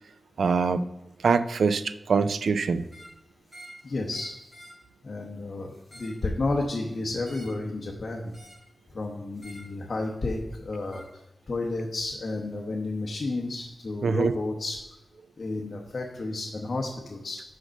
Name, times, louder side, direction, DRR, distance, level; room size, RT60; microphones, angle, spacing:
voice 1, 0.4-0.9 1.2-2.9 14.0-14.3, right 5 dB, 80° right, 13 dB, 0.4 m, -24 dB
sound 1, 2.8-3.2 3.5-3.8 4.1-4.8 5.7-6.2 7.2-7.6 8.3-8.7 9.4-9.7 10.9-11.1, equal, 5° right, 2.8 m, -49 dB
voice 2, 3.8-4.3 5.0-8.3 8.9-11.0 11.5-14.8 15.4-17.4, left 2 dB, 40° left, 0 dB, 0.9 m, -31 dB
6.5 x 5.3 x 6.3 m, 0.93 s
wide cardioid pair, 175°, 0 cm